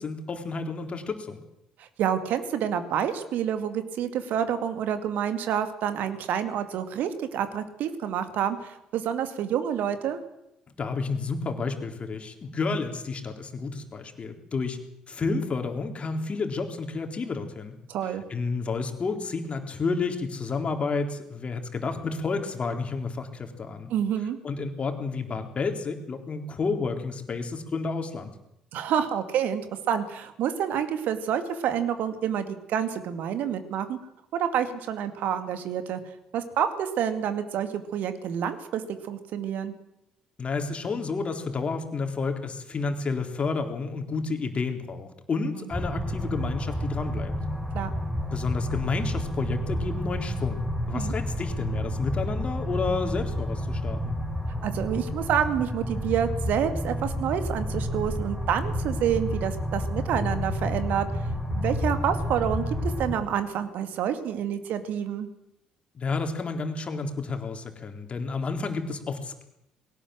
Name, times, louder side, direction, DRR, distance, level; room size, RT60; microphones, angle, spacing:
voice 1, 0.0-1.4 10.8-14.8 15.1-17.8 18.3-23.9 24.4-28.3 40.4-47.3 48.3-54.2 65.9-69.4, left 4 dB, 35° left, 5 dB, 3.7 m, -30 dB
voice 2, 1.8-10.2 17.9-18.2 23.9-24.4 28.7-34.0 34.3-36.0 36.3-39.7 45.6-45.7 47.7-47.9 50.9-51.1 54.6-61.1 61.5-65.3, right 9 dB, 60° right, 9 dB, 2.3 m, -28 dB
sound 1, 45.7-63.1, equal, 5° right, 4.8 m, -30 dB
20.5 x 17.5 x 7.8 m, 0.83 s
figure-of-eight pair, 50°, 3 cm